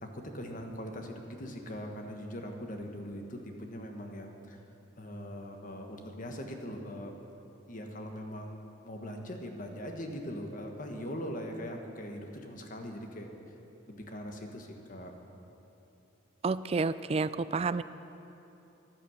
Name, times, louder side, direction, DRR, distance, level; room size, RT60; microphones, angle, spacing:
voice 1, 0.0-4.6 5.0-7.1 7.7-13.3 13.9-15.1, equal, 40° left, 3 dB, 1.3 m, -41 dB
voice 2, 16.4-17.8, right 4 dB, 30° right, 14 dB, 0.3 m, -30 dB
15.0 x 11.0 x 6.4 m, 2.9 s
head